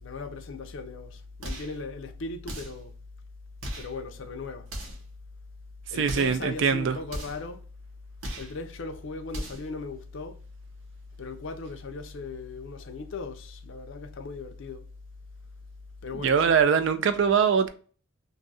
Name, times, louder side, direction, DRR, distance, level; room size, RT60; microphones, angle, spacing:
voice 1, 0.0-2.9 3.8-4.7 5.9-7.6 8.4-10.4 11.2-14.8 16.0-16.5, left 3 dB, 60° left, 0.5 m, -38 dB
sound 1, 1.4-1.8 2.4-2.9 3.6-4.0 4.6-5.1 6.0-6.4 7.1-7.5 8.2-8.6 9.3-9.7, equal, 75° right, 0.9 m, -37 dB
voice 2, 6.0-7.0 16.1-17.7, right 6 dB, 55° right, 0.3 m, -22 dB
2.6 x 2.4 x 4.0 m
head